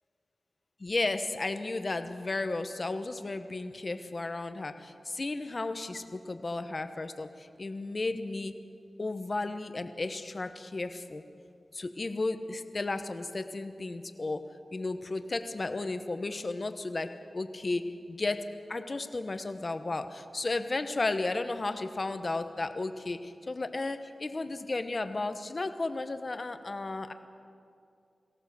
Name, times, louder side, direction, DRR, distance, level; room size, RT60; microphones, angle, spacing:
voice 1, 0.8-8.6 9.0-11.2 11.7-27.1, left 2 dB, 35° left, 9 dB, 1.1 m, -34 dB
23.5 x 17.0 x 6.9 m, 2.5 s
wide cardioid pair, 115°, 0 cm